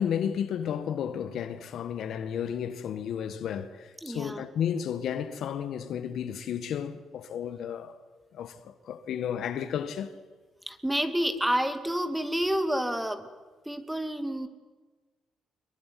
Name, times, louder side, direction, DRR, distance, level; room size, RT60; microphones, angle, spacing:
voice 1, 0.0-8.0 8.3-10.1, left 8 dB, 70° left, 1.8 m, -32 dB
voice 2, 4.0-4.4 10.7-13.3 13.7-14.5, equal, 5° right, 2.3 m, -29 dB
25.5 x 22.5 x 9.5 m
cardioid pair, 90°, 0 cm